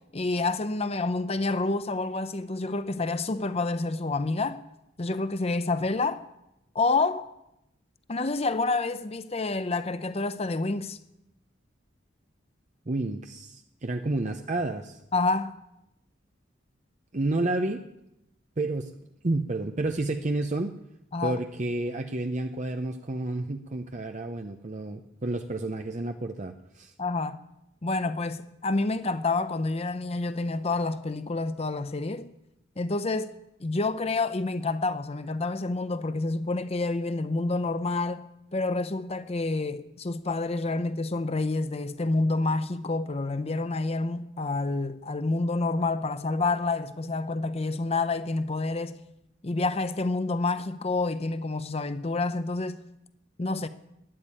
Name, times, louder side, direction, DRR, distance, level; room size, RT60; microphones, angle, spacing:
voice 1, 0.1-4.6 5.0-6.2 6.7-7.3 8.1-11.0 15.1-15.5 21.1-21.4 27.0-27.4 27.8-32.3 32.8-33.3 33.6-38.2 38.5-49.0 49.4-52.8 53.4-53.7, left 3 dB, 30° left, 0.7 m, -28 dB
voice 2, 12.9-15.0 17.1-17.9 18.6-18.9 19.2-20.7 21.2-26.9, right 2 dB, 40° right, 0.7 m, -30 dB
12.5 x 11.0 x 8.8 m
head